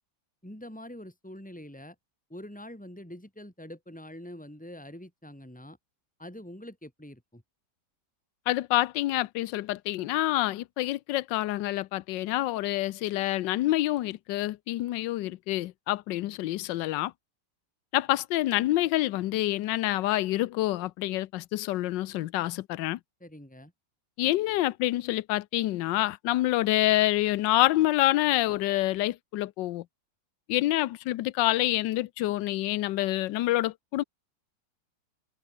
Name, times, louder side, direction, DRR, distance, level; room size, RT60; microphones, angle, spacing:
voice 1, 0.4-2.0 2.3-5.8 6.2-7.4 23.2-23.7, left 1 dB, 5° left, 5.4 m, -44 dB
voice 2, 8.5-17.1 17.9-23.0 24.2-29.8 30.5-34.0, left 16 dB, 80° left, 1.3 m, -27 dB
omnidirectional pair, 2.0 m